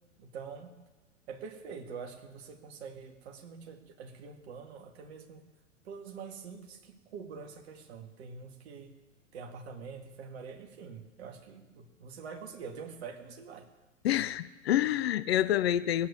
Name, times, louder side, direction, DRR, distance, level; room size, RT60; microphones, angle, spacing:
voice 1, 0.2-0.7 1.3-5.4 5.8-8.9 9.3-13.7, right 5 dB, 55° right, 4 dB, 2.1 m, -45 dB
voice 2, 14.0-16.1, left 12 dB, 50° left, 15 dB, 0.6 m, -27 dB
19.5 x 8.6 x 8.7 m, 1.2 s
figure-of-eight pair, 100°, 39 cm